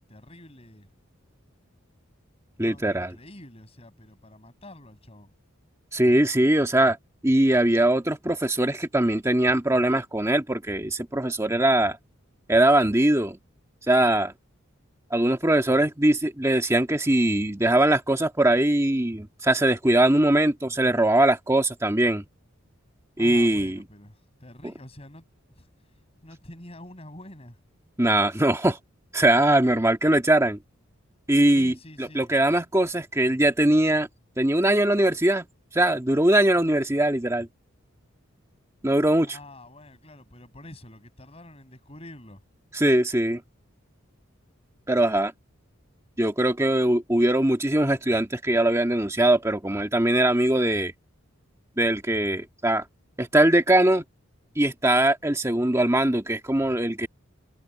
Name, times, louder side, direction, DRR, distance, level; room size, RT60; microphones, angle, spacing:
voice 1, 0.1-0.8 2.6-5.3 23.2-24.1 24.4-25.2 26.2-27.5 31.5-32.3 39.3-42.4, left 1 dB, 30° left, 5.9 m, -46 dB
voice 2, 2.6-3.1 5.9-7.0 7.2-12.0 12.5-13.4 13.9-14.3 15.1-22.2 23.2-23.9 24.6-24.7 28.0-28.8 29.1-30.6 31.3-34.1 34.4-35.5 35.7-37.5 38.8-39.4 42.7-43.4 44.9-45.3 46.2-50.9 51.8-52.8 53.2-54.0 54.5-57.1, right 1 dB, 15° right, 1.7 m, -21 dB
head